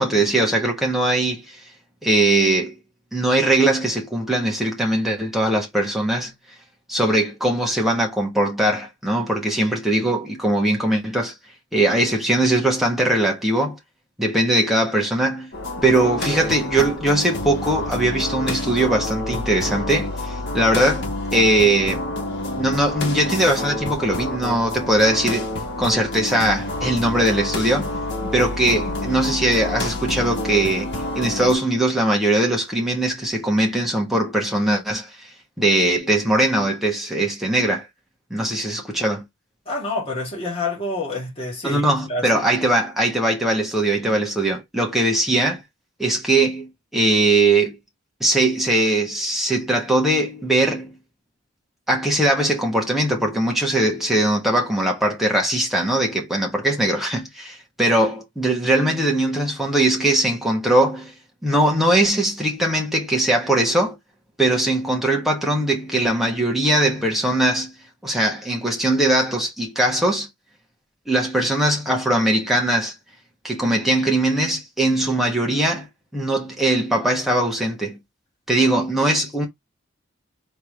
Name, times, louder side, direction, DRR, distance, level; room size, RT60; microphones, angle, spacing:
voice 1, 0.0-1.6 2.0-2.7 3.1-6.3 6.9-11.3 11.7-13.8 14.2-15.5 15.8-22.0 22.6-25.5 25.8-27.9 28.3-35.1 35.6-37.9 38.3-39.2 41.6-45.6 46.0-47.8 48.2-51.0 51.9-61.1 61.4-64.0 64.4-67.7 68.0-70.3 71.1-72.9 73.4-75.9 76.1-78.0 78.5-79.5, right 1 dB, ahead, 1.3 m, -20 dB
sound 1, 15.5-31.6, left 2 dB, 60° left, 1.5 m, -28 dB
voice 2, 39.7-42.4, left 2 dB, 30° left, 1.9 m, -28 dB
3.8 x 3.3 x 3.5 m
head